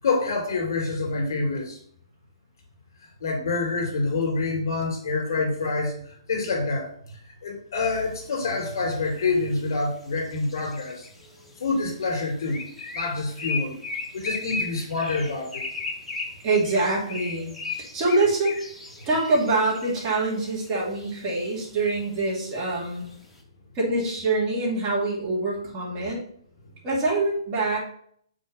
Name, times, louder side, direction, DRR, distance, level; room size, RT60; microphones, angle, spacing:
voice 1, 0.0-1.8 3.2-11.1 11.6-12.6 12.9-13.7 14.1-15.6, left 3 dB, 45° left, 0 dB, 3.0 m, -27 dB
sound 1, 7.9-23.4, left 4 dB, 10° left, 0.9 m, -37 dB
voice 2, 16.4-18.6 19.1-23.0 23.7-26.2 26.8-27.8, right 2 dB, 25° right, -4 dB, 2.4 m, -25 dB
6.7 x 3.7 x 5.6 m, 0.63 s
figure-of-eight pair, 125°, 3 cm